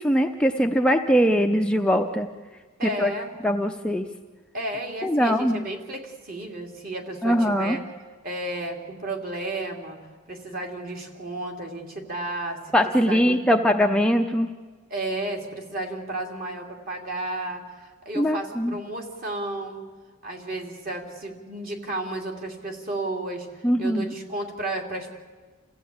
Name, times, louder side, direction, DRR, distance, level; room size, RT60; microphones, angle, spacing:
voice 1, 0.0-2.3 2.8-3.1 3.4-4.1 5.0-5.6 7.2-7.8 12.7-14.5 18.2-18.7 23.6-24.1, equal, 5° left, 3 dB, 0.6 m, -21 dB
voice 2, 2.8-3.3 4.5-7.8 8.2-10.0 10.3-12.6 13.0-13.4 14.9-19.8 20.2-23.5 23.8-25.1, right 2 dB, 40° right, 2 dB, 3.0 m, -32 dB
29.0 x 15.5 x 8.7 m, 1.4 s
head